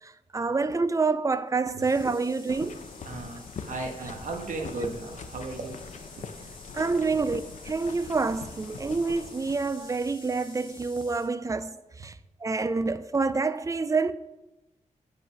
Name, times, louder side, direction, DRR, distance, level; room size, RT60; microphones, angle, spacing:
voice 1, 0.0-2.8 6.7-12.1 12.4-14.1, right 4 dB, 25° right, 0.4 m, -27 dB
sound 1, 1.8-11.3, left 3 dB, 35° left, 2.0 m, -50 dB
sound 2, 2.5-10.0, left 5 dB, 65° left, 0.6 m, -43 dB
voice 2, 3.0-6.5 7.0-7.3, right 3 dB, 70° right, 1.3 m, -37 dB
7.7 x 5.3 x 5.7 m
wide cardioid pair, 105°, 13 cm